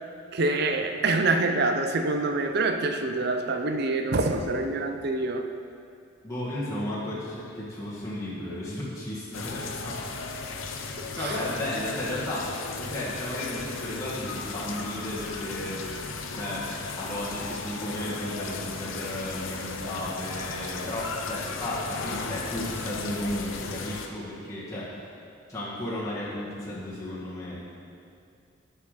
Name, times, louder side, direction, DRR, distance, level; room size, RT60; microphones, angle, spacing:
voice 1, 0.3-5.4 11.2-11.4, right 2 dB, 55° right, 6 dB, 0.6 m, -26 dB
voice 2, 6.2-10.0 11.2-15.8 16.3-16.6 17.0-24.9 25.5-27.6, left 1 dB, 15° left, -9 dB, 1.6 m, -34 dB
sound 1, 9.3-24.1, left 4 dB, 90° left, 0.7 m, -36 dB
6.9 x 5.6 x 6.6 m, 2.4 s
head